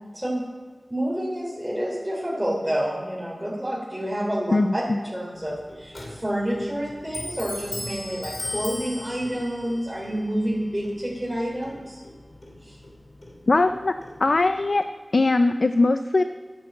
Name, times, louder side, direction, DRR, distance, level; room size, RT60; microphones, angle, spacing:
voice 1, 0.9-12.0 12.6-12.8, equal, 15° right, -6 dB, 3.2 m, -28 dB
voice 2, 4.5-5.0 13.5-13.9 14.2-14.8 15.1-16.2, left 2 dB, 70° left, 9 dB, 0.5 m, -20 dB
Clock, 5.3-14.6, left 1 dB, 45° left, 3.4 m, -39 dB
10.5 x 9.4 x 7.4 m, 1.6 s
wide cardioid pair, 55°, 0 cm